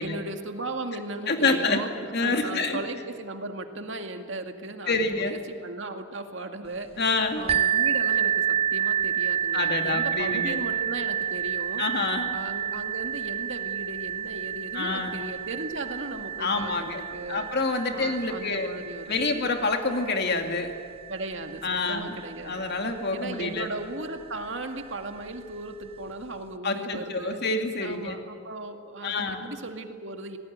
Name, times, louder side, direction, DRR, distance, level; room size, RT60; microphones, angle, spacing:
voice 1, 0.0-1.9 2.2-7.0 7.3-11.8 12.3-17.5 17.9-19.5 21.1-22.6 23.1-27.4 27.8-30.4, right 2 dB, 65° right, 5 dB, 2.1 m, -37 dB
voice 2, 1.3-1.8 2.1-2.8 4.9-5.4 7.0-7.4 9.5-10.6 11.8-12.4 14.7-15.1 16.4-17.0 17.3-18.7 19.1-20.7 21.6-22.1 22.4-23.7 26.6-28.2 29.0-29.5, left 3 dB, 55° left, 4 dB, 2.5 m, -27 dB
sound 1, 7.5-23.0 23.8-23.9 24.4-24.5, right 9 dB, 30° right, 0.6 m, -30 dB
27.5 x 19.0 x 9.5 m, 2.1 s
head